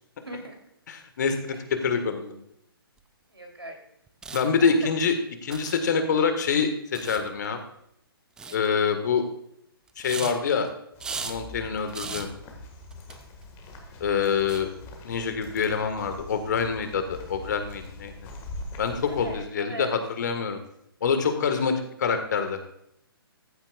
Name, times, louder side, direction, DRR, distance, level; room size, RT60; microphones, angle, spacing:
voice 1, 0.2-0.7 1.5-1.6 3.3-3.8 4.6-4.9 8.4-8.6 13.9-14.1 19.1-19.9, right 1 dB, 85° right, 1 dB, 3.3 m, -40 dB
voice 2, 0.9-2.3 4.3-5.1 5.4-7.6 8.5-9.2 10.0-10.7 11.2-12.3 14.0-14.7 15.0-18.1 18.8-20.6 21.0-22.6, left 6 dB, 45° left, 8 dB, 1.5 m, -26 dB
sound 1, 3.0-3.1 4.1-4.4 5.5-5.8 6.9-7.3 8.4-8.7 9.9-10.7 11.0-11.4 11.9-12.3 12.9-13.1 13.4-13.5 14.5-14.6, right 5 dB, 5° right, 0.4 m, -36 dB
sound 2, 10.9-19.4, left 1 dB, 20° left, 1.7 m, -43 dB
14.5 x 8.9 x 2.4 m, 0.75 s
figure-of-eight pair, 130°, 13 cm